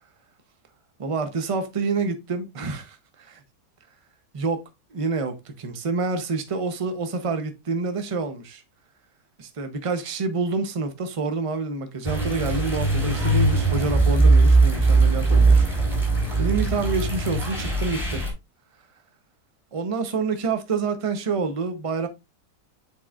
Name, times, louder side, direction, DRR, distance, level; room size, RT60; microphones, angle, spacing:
voice 1, 1.0-3.4 4.3-4.6 4.9-8.6 9.4-15.7 16.4-18.2 19.7-22.1, right 4 dB, 30° right, 0.6 m, -27 dB
sound 1, 12.0-18.3, right 3 dB, ahead, 3.3 m, -20 dB
8.3 x 4.7 x 2.4 m
omnidirectional pair, 1.7 m